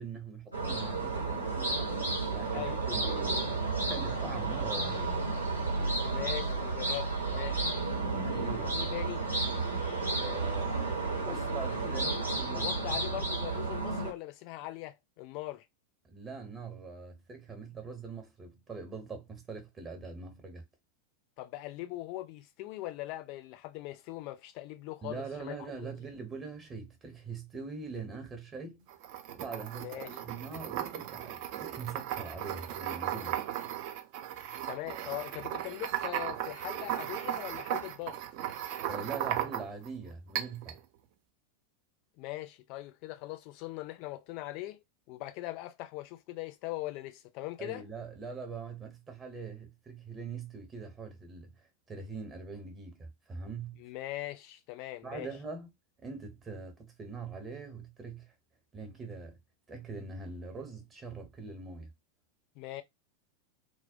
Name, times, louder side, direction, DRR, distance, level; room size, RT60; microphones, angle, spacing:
voice 1, 0.0-1.9 2.3-3.5 3.8-5.2 8.2-8.8 10.2-13.2 16.0-20.6 25.0-28.9 29.3-33.4 38.9-40.8 47.6-51.6 51.9-53.8 55.0-55.7 56.0-58.3 58.7-59.4 59.7-61.9, right 4 dB, 20° right, 0.9 m, -43 dB
sound 1, 0.5-14.1, right 3 dB, 85° right, 0.9 m, -32 dB
voice 2, 6.0-7.6 8.6-9.2 12.5-15.6 21.4-25.9 29.7-30.2 34.7-38.2 42.2-47.8 53.8-55.3 62.6-62.8, left 17 dB, 45° left, 0.4 m, -41 dB
sound 2, 28.9-39.9 40.3-40.8, right 11 dB, 45° right, 0.4 m, -36 dB
2.2 x 2.1 x 2.6 m
figure-of-eight pair, 90°, 0 cm